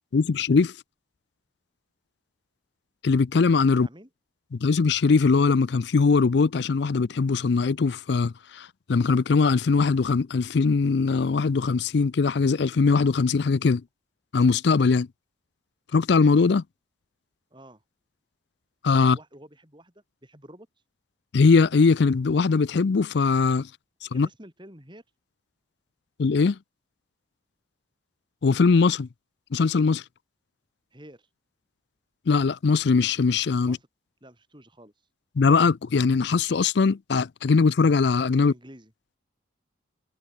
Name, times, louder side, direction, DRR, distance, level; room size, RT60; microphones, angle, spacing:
voice 1, 0.1-0.7 3.0-3.9 4.5-13.8 14.3-15.1 15.9-16.6 18.8-19.2 21.3-23.7 24.1-24.3 26.2-26.6 28.4-29.1 29.5-30.0 32.3-33.8 35.4-38.5, left 4 dB, 55° left, 0.4 m, -21 dB
voice 2, 17.5-17.8 19.0-20.7 24.1-25.0 30.9-31.3 33.6-33.9 34.2-34.9 38.4-38.9, right 1 dB, 25° right, 5.2 m, -49 dB
open air
head